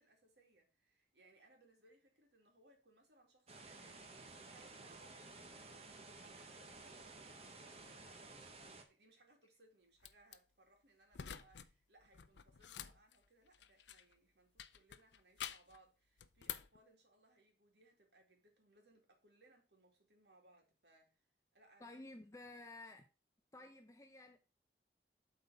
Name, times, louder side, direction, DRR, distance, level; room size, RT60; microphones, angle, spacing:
voice 1, 0.0-21.2 21.5-21.9 23.6-23.7, right 2 dB, 75° right, 2.4 m, -69 dB
sound 1, 3.5-8.8, right 3 dB, 35° right, 1.1 m, -55 dB
sound 2, 10.0-10.4 11.1-11.7 12.0-14.1 14.6-15.8 16.2-16.8, left 9 dB, 85° left, 0.6 m, -49 dB
voice 2, 21.8-23.1 23.5-24.4, left 2 dB, 20° left, 0.5 m, -53 dB
7.9 x 4.1 x 5.6 m
head